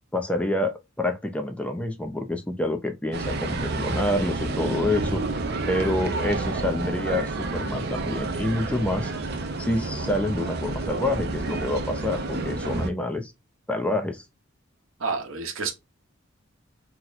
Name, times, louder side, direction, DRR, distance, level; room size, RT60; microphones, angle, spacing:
voice 1, 0.1-5.2 5.7-9.1 9.6-13.3 13.7-14.3, left 1 dB, 5° left, 0.4 m, -27 dB
sound 1, 3.1-12.9, right 2 dB, 50° right, 0.5 m, -29 dB
voice 2, 15.0-15.7, right 4 dB, 80° right, 0.8 m, -29 dB
2.9 x 2.1 x 3.9 m
head